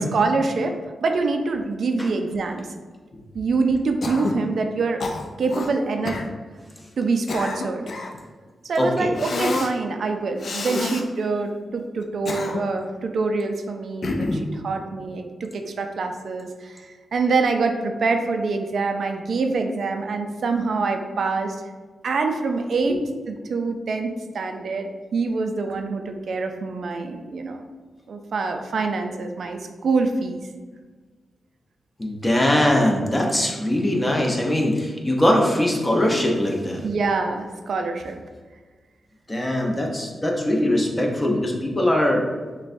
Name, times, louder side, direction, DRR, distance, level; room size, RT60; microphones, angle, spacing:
voice 1, 0.0-2.7 3.3-5.0 5.4-6.2 7.0-7.8 8.6-21.6 22.0-23.0 23.3-27.6 28.1-30.4 36.8-38.2, right 4 dB, 70° right, 5 dB, 0.4 m, -25 dB
Cough, 4.0-4.4 5.0-5.7 6.0-6.3 7.0-8.2 9.2-9.7 10.4-11.0 12.0-12.8 14.0-14.5, left 2 dB, 60° left, 0.4 m, -28 dB
voice 2, 8.8-9.2 14.3-14.5 32.0-36.8 39.3-42.2, left 1 dB, 20° left, 0 dB, 0.7 m, -21 dB
6.2 x 2.2 x 2.6 m, 1.4 s
cardioid pair, 80°, 0 cm